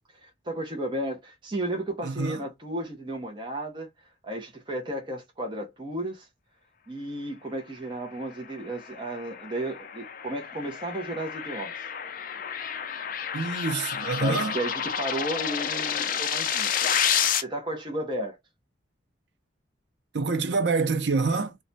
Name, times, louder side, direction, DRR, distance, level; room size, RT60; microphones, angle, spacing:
voice 1, 0.1-3.9 4.2-6.3 6.9-11.9 14.2-17.1 17.4-18.4, right 1 dB, 25° right, 0.6 m, -33 dB
voice 2, 2.0-2.4 13.3-14.6 20.1-21.6, right 4 dB, 70° right, 0.5 m, -26 dB
sound 1, 8.5-17.4, left 8 dB, 50° left, 0.4 m, -30 dB
2.3 x 2.2 x 3.8 m
head